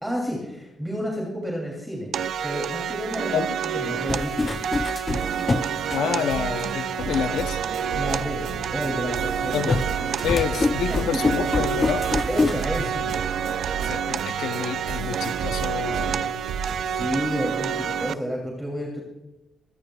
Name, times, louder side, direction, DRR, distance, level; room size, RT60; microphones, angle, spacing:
voice 1, 0.0-2.1 2.4-4.6 7.9-10.4 10.9-11.0 12.3-13.1 16.8-19.0, equal, 5° right, -2 dB, 2.8 m, -31 dB
sound 1, 2.1-18.1, right 8 dB, 65° right, 0.5 m, -29 dB
sound 2, 4.1-6.6 7.3-7.4 9.7-12.7, left 3 dB, 25° left, 0.4 m, -26 dB
sound 3, 5.1-17.1, right 6 dB, 85° right, 1.4 m, -33 dB
voice 2, 5.9-7.6 9.5-9.8 10.2-12.1 13.8-16.2, left 8 dB, 90° left, 11 dB, 0.7 m, -28 dB
23.5 x 14.0 x 2.3 m, 1.0 s
cardioid pair, 115°, 0 cm